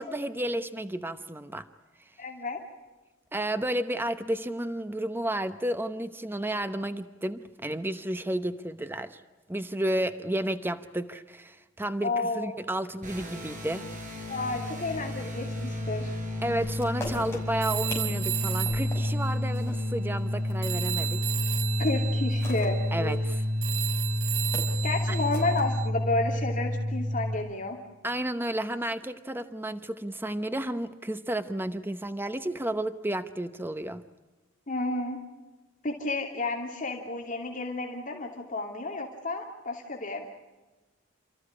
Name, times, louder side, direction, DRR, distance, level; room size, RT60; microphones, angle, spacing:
voice 1, 0.0-1.7 3.3-9.2 9.5-13.9 16.4-21.2 22.9-23.4 25.1-25.2 28.0-34.0, right 1 dB, 10° right, 10 dB, 0.9 m, -32 dB
voice 2, 2.2-2.6 12.0-12.5 14.3-16.1 21.8-23.2 24.8-27.8 34.7-35.2 35.8-40.3, left 2 dB, 40° left, 2 dB, 2.8 m, -31 dB
sound 1, 13.0-27.4, left 1 dB, 40° right, 5.7 m, -30 dB
sound 2, 16.6-21.5 21.9-25.7, left 1 dB, 15° left, 6.2 m, -43 dB
Telephone, 17.6-20.4 20.6-25.9, right 15 dB, 85° right, 1.9 m, -35 dB
29.5 x 14.5 x 9.9 m, 1.2 s
head